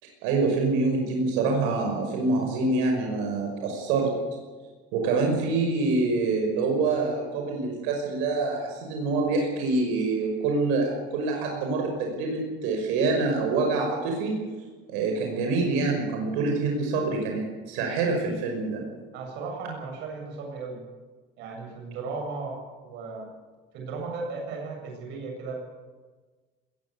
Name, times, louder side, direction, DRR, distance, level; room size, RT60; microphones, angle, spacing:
voice 1, 0.2-4.1 4.9-14.4 14.9-18.8, right 3 dB, 90° right, 1 dB, 5.7 m, -26 dB
voice 2, 19.1-20.8 21.4-23.3 23.7-25.5, right 4 dB, 60° right, 2 dB, 7.7 m, -36 dB
20.5 x 16.5 x 8.5 m, 1.3 s
cardioid pair, 165°, 21 cm